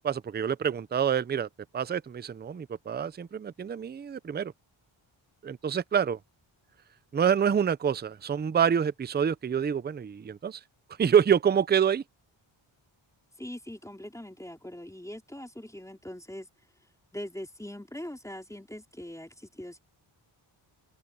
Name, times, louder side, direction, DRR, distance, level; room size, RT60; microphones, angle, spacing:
voice 1, 0.0-4.5 5.4-6.2 7.1-10.6 11.0-12.0, right 8 dB, 25° right, 0.4 m, -27 dB
voice 2, 13.4-16.5 17.1-19.8, left 1 dB, 5° left, 3.5 m, -41 dB
wide cardioid pair, 170°, 47 cm